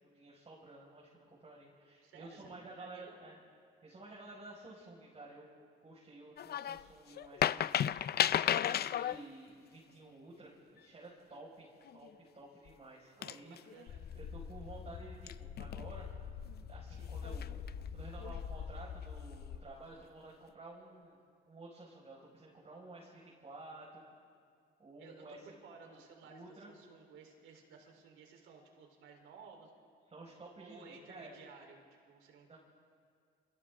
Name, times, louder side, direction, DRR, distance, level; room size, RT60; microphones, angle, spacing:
voice 1, 0.0-3.4 3.8-5.5 5.8-7.7 8.6-13.6 14.1-16.1 16.7-17.6 17.9-21.2 21.5-24.0 24.8-25.4 25.8-26.7 30.1-31.4 32.5-32.6, right 2 dB, 30° right, -5 dB, 5.6 m, -52 dB
voice 2, 2.0-3.2 13.2-14.0 16.9-17.2 25.0-29.7 30.6-32.6, right 5 dB, 90° right, 2 dB, 3.9 m, -56 dB
sound 1, 6.4-6.8 7.2-9.2 11.9-12.1 12.7-12.8 13.2-13.8 15.3-15.9 17.1-17.7 18.2-18.4, left 10 dB, 55° left, 0.5 m, -33 dB
sound 2, 13.9-19.6, left 7 dB, 85° left, 1.7 m, -45 dB
29.0 x 27.5 x 3.7 m, 2.1 s
cardioid pair, 90°, 20 cm